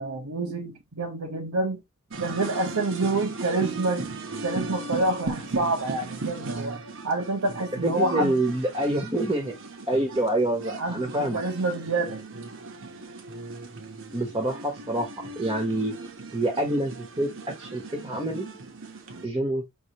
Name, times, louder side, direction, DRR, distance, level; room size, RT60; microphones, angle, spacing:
voice 1, 0.0-1.8 2.2-4.1 4.4-8.3 10.8-12.2, right 2 dB, 90° right, 1.1 m, -28 dB
sound 1, 2.1-19.3, right 3 dB, 60° right, 1.0 m, -37 dB
voice 2, 7.8-9.5 9.9-11.4 14.1-15.1 15.4-15.9 16.3-17.3 17.6-18.5 19.2-19.6, right 1 dB, 20° right, 1.0 m, -26 dB
5.5 x 3.2 x 2.9 m
head